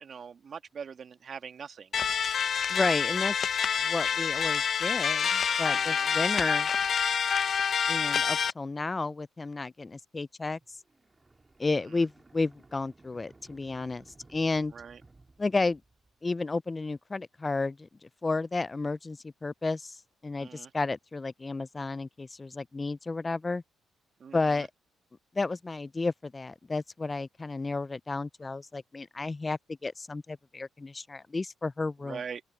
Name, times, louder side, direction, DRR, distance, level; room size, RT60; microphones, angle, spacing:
voice 1, 0.0-2.1 5.7-6.1 14.7-15.0 20.4-20.7 24.2-24.7 32.0-32.4, right 6 dB, 50° right, 1.8 m, -42 dB
sound 1, 1.9-8.5, left 7 dB, 55° left, 0.8 m, -27 dB
voice 2, 2.7-3.3 3.8-6.7 7.9-10.6 11.6-14.0 14.3-14.7 15.4-15.8 16.2-17.9 18.2-20.0 20.2-23.6 24.3-24.7 25.4-32.2, left 3 dB, 25° left, 0.3 m, -32 dB
sound 2, 10.6-16.3, right 3 dB, 20° right, 3.7 m, -59 dB
cardioid pair, 80°, 0 cm